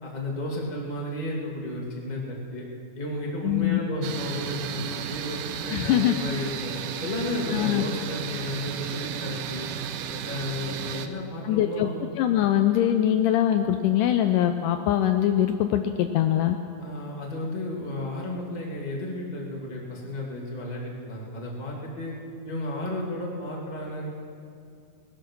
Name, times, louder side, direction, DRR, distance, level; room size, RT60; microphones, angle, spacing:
voice 1, 0.0-2.6 2.9-6.7 7.0-9.7 10.1-12.0 16.8-22.1 22.4-24.1, left 1 dB, 15° left, -3 dB, 1.7 m, -33 dB
voice 2, 3.4-3.8 5.7-6.2 7.5-7.8 11.4-11.9 12.2-16.6, left 11 dB, 90° left, 7 dB, 1.8 m, -22 dB
sound 1, 4.0-11.1, right 9 dB, 75° right, 2.1 m, -34 dB
19.0 x 11.5 x 6.2 m, 2.4 s
omnidirectional pair, 4.3 m